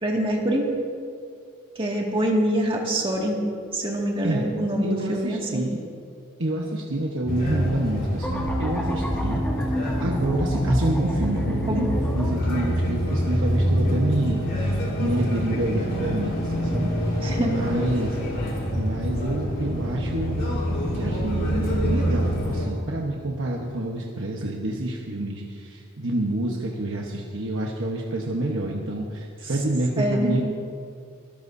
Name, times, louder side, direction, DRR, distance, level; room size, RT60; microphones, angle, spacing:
voice 1, 0.0-0.7 1.8-3.4 3.7-5.6 11.7-11.8 17.2-17.5 30.0-30.4, right 1 dB, 25° right, -2 dB, 2.1 m, -25 dB
voice 2, 4.8-5.8 6.4-9.4 10.0-18.2 18.7-20.5 20.9-30.4, right 1 dB, 60° right, -1 dB, 1.1 m, -28 dB
sound 1, 7.3-22.7, equal, 55° left, 4.1 m, -26 dB
sound 2, 8.2-12.5, equal, 10° left, 2.1 m, -29 dB
23.5 x 14.0 x 2.7 m, 2.3 s
head